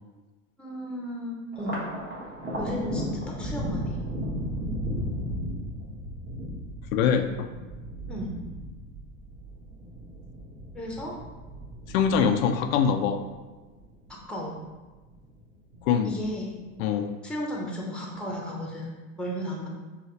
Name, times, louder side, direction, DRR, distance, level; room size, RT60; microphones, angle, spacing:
voice 1, 0.6-1.8 2.6-4.0 8.1-8.3 10.7-11.1 14.3-14.6 16.0-16.5 17.2-18.9 19.2-19.7, equal, ahead, -2 dB, 0.9 m, -34 dB
Thunder, 1.5-14.2 14.6-15.4 15.7-16.6, equal, 25° right, 1.4 m, -35 dB
voice 2, 6.9-7.5 11.9-13.3 15.8-16.2 16.8-17.2, left 7 dB, 75° left, 7 dB, 0.5 m, -23 dB
5.6 x 2.3 x 3.2 m, 1.2 s
supercardioid pair, 110°, 41 cm